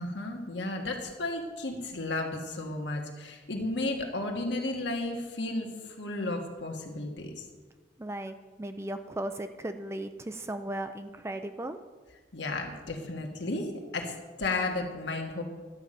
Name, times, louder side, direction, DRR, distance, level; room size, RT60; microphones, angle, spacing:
voice 1, 0.0-7.4 12.3-15.4, left 2 dB, 70° left, 2 dB, 1.6 m, -33 dB
voice 2, 8.0-11.8, right 1 dB, 15° right, 8 dB, 0.4 m, -36 dB
11.5 x 5.4 x 7.7 m, 1.4 s
head